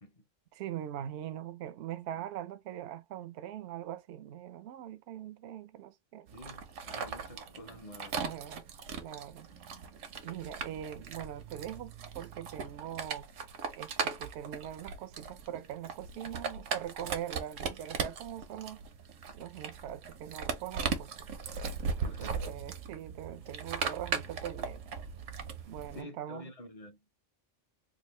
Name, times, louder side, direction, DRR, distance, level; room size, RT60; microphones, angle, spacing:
voice 1, 0.5-6.3 8.2-8.7 9.0-9.5 10.2-13.3 13.8-18.8 19.3-21.4 22.0-24.8 25.7-26.5, right 11 dB, 65° right, 0.8 m, -42 dB
voice 2, 6.3-8.6 9.5-9.6 22.0-22.5 25.9-27.0, left 1 dB, 35° left, 0.7 m, -49 dB
sound 1, 6.3-26.0, right 5 dB, 85° right, 1.2 m, -39 dB
3.6 x 2.4 x 3.1 m
omnidirectional pair, 1.3 m